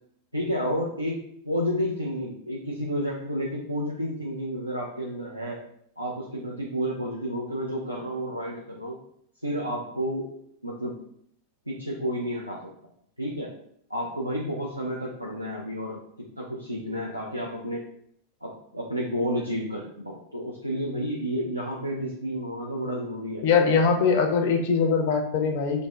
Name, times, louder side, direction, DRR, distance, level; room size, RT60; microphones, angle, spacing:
voice 1, 0.3-1.2 1.4-5.6 6.0-9.0 9.4-10.3 10.6-11.0 11.7-12.7 13.2-13.5 13.9-16.0 16.4-17.8 18.4-23.4, equal, 85° right, -3 dB, 0.4 m, -31 dB
voice 2, 23.4-25.9, left 5 dB, 50° left, 4 dB, 0.4 m, -22 dB
2.5 x 2.0 x 3.1 m, 0.69 s
figure-of-eight pair, 90°, 0 cm